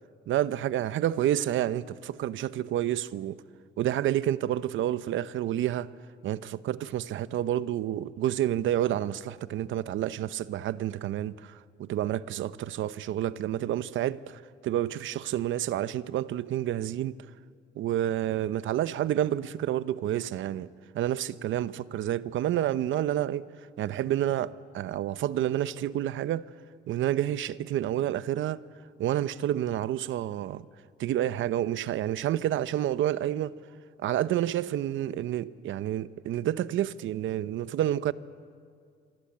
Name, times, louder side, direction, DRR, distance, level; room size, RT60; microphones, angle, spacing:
voice 1, 0.3-3.4 3.8-5.9 6.2-17.2 17.7-23.5 23.8-26.5 26.9-28.6 29.0-30.6 31.0-33.5 34.0-38.1, right 12 dB, 75° right, 0.8 m, -29 dB
26.5 x 24.5 x 8.7 m
cardioid pair, 90°, 20 cm